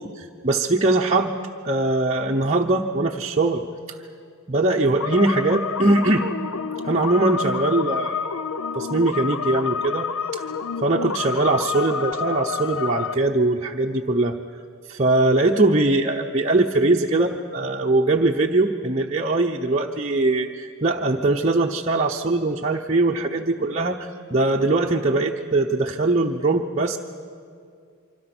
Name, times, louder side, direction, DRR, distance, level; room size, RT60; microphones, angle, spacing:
voice 1, 0.2-1.4 1.6-3.6 4.5-6.3 6.8-8.4 8.7-10.4 10.8-14.3 14.9-27.0, right 2 dB, 30° right, -1 dB, 0.9 m, -21 dB
sound 1, 5.0-13.2, left 6 dB, 70° left, 0.7 m, -28 dB
26.0 x 25.0 x 6.1 m, 2.2 s
head